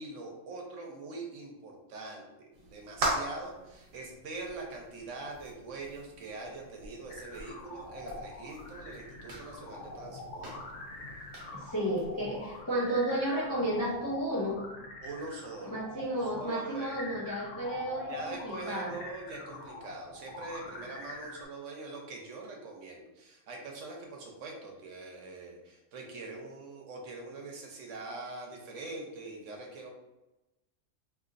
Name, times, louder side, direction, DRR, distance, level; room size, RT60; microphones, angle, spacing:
voice 1, 0.0-10.6 15.0-15.8 16.4-17.1 18.1-29.9, right 3 dB, 80° right, 1 dB, 1.1 m, -43 dB
sound 1, 2.5-12.6, right 1 dB, 50° right, 1.1 m, -41 dB
sound 2, 7.1-21.5, left 2 dB, 80° left, 1.0 m, -44 dB
voice 2, 11.5-14.6 15.7-19.0, right 1 dB, 30° left, -5 dB, 0.4 m, -32 dB
3.8 x 2.8 x 2.4 m, 1.0 s
omnidirectional pair, 1.3 m